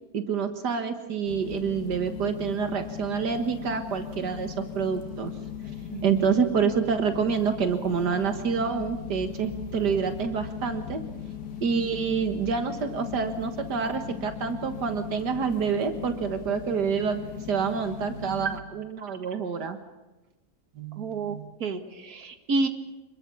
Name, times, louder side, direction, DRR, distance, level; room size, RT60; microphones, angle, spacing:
voice 1, 0.1-5.3 6.0-11.0 11.6-19.8 20.8-21.5, right 6 dB, 85° right, 7 dB, 2.1 m, -27 dB
sound 1, 1.3-18.6, left 9 dB, 80° left, 2.4 m, -38 dB
voice 2, 21.0-22.7, right 3 dB, 65° right, 8 dB, 2.4 m, -30 dB
26.5 x 21.5 x 7.1 m, 1.1 s
omnidirectional pair, 1.8 m